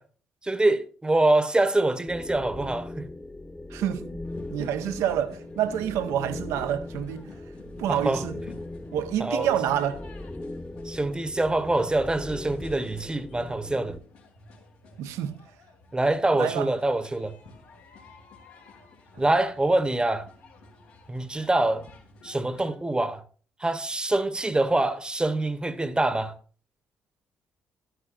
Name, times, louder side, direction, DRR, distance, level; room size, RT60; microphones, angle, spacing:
voice 1, 0.4-3.1 7.9-8.2 9.2-9.5 10.8-14.0 15.9-17.4 19.2-20.3 21.1-21.9 22.2-23.2 23.6-26.3, right 2 dB, 15° right, 0.9 m, -25 dB
sound 1, 2.1-14.0, left 2 dB, 15° left, 1.0 m, -39 dB
voice 2, 3.7-4.2 4.5-7.3 7.8-8.4 8.9-10.1 15.0-15.4 16.4-16.7, right 10 dB, 75° right, 0.7 m, -28 dB
sound 2, 4.2-22.7, left 3 dB, 90° left, 2.1 m, -51 dB
12.5 x 11.5 x 2.5 m
hypercardioid pair, 50°, 5 cm